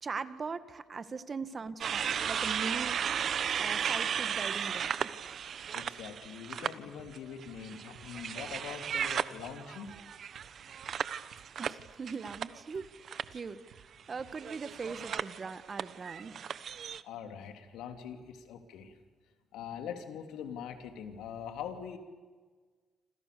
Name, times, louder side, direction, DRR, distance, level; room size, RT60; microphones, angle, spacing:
voice 1, 0.0-5.1 11.6-16.5, right 5 dB, 40° right, 12 dB, 1.7 m, -41 dB
sound 1, 1.8-6.7 7.1-12.8 13.1-13.4 14.3-17.0, right 8 dB, 60° right, 1.1 m, -35 dB
voice 2, 5.7-10.0 17.0-18.9 19.5-22.0, left 8 dB, 90° left, 6 dB, 3.3 m, -43 dB
sound 2, 7.0-7.1 7.5-7.6 7.9-8.1 8.4-8.6 8.9-9.1 9.4-9.5 9.9-10.0 10.3-10.5 10.8-11.0 11.3-11.5 11.8-11.9 12.3-12.4 12.7-12.9 13.2-13.4 13.7-13.9 14.2-14.3, right 8 dB, 75° right, 2.7 m, -57 dB
28.0 x 27.0 x 7.0 m, 1.4 s
cardioid pair, 90°, 0 cm